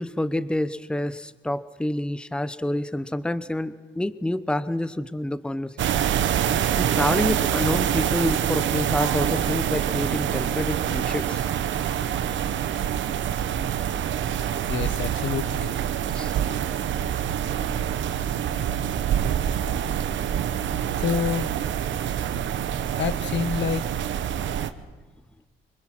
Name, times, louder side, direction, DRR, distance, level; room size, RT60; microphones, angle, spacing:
voice 1, 0.0-6.0 6.7-11.4 16.1-16.4, left 1 dB, 5° left, 14 dB, 0.8 m, -28 dB
sound 1, 5.8-24.7, right 9 dB, 70° right, 1.1 m, -26 dB
voice 2, 14.7-15.7 21.0-21.5 23.0-23.9, left 7 dB, 65° left, 14 dB, 1.0 m, -27 dB
25.0 x 22.0 x 6.1 m, 1.3 s
cardioid pair, 90°, 20 cm